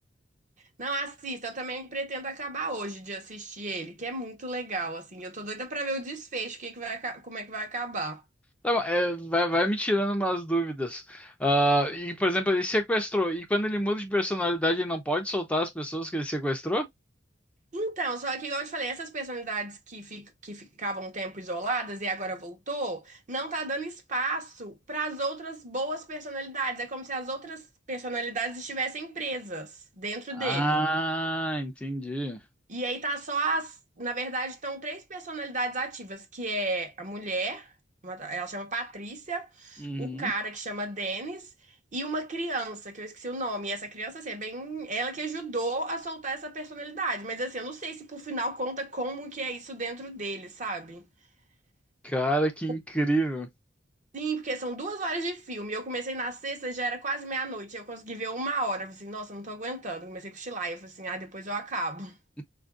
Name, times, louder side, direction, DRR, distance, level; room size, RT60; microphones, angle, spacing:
voice 1, 0.8-8.2 17.7-30.8 32.7-37.7 38.0-41.5 41.9-51.1 54.1-62.2, right 2 dB, 40° right, 0.9 m, -33 dB
voice 2, 8.6-16.9 30.4-32.4 39.8-40.3 52.0-53.5, equal, 5° left, 0.5 m, -27 dB
4.4 x 2.5 x 2.3 m
head